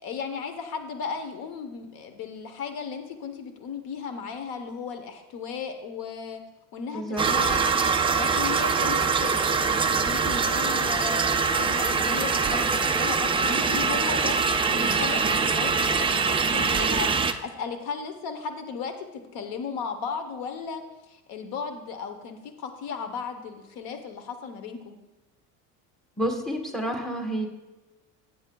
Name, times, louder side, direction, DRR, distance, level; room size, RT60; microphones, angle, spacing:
voice 1, 0.0-6.4 6.7-25.0, left 6 dB, 65° left, 7 dB, 1.0 m, -36 dB
voice 2, 6.9-7.2 26.2-27.5, equal, ahead, 2 dB, 1.3 m, -29 dB
sound 1, 7.2-17.3, right 5 dB, 15° right, 0.3 m, -23 dB
14.0 x 8.0 x 2.3 m, 1.1 s
cardioid pair, 115°, 40 cm